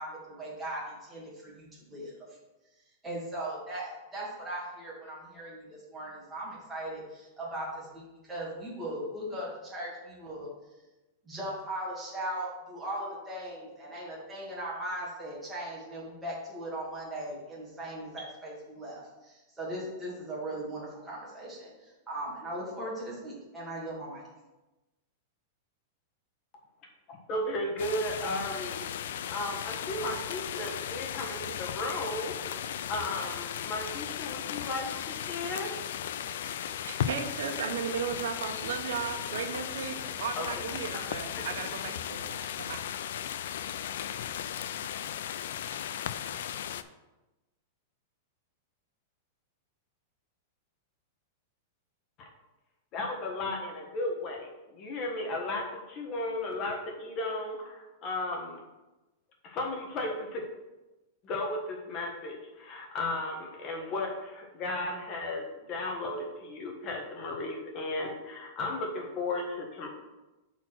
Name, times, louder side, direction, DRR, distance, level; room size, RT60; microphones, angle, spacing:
voice 1, 0.0-2.1 3.0-10.5 11.2-24.2, right 1 dB, 10° right, -7 dB, 2.3 m, -38 dB
voice 2, 27.1-35.8 40.4-40.5 41.4-41.5 52.2-52.3 52.9-58.6 59.4-60.4 61.2-69.9, left 2 dB, 30° left, 0 dB, 1.3 m, -35 dB
sound 1, 27.8-46.8, left 10 dB, 75° left, 0.4 m, -36 dB
voice 3, 36.9-42.8, right 7 dB, 80° right, 8 dB, 0.8 m, -36 dB
5.8 x 4.4 x 6.1 m, 1.1 s
supercardioid pair, 160°, 0 cm